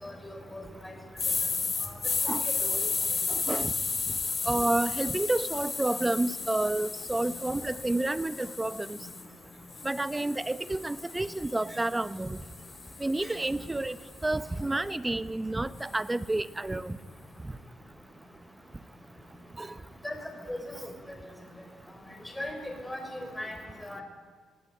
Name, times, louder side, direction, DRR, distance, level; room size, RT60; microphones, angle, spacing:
voice 1, 0.0-0.9 1.9-2.0 2.4-2.8 20.0-20.1 20.5-20.8 22.4-23.5 23.8-24.0, left 1 dB, 10° left, 3 dB, 5.1 m, -38 dB
sound 1, 1.2-9.2 9.7-13.9, left 4 dB, 35° left, 2.2 m, -33 dB
voice 2, 3.3-3.7 4.5-9.0 9.8-12.4 13.0-14.0 14.2-17.0 19.6-19.7, right 2 dB, 15° right, 14 dB, 0.8 m, -30 dB
19.0 x 18.5 x 8.9 m, 1.5 s
cardioid pair, 90°, 0 cm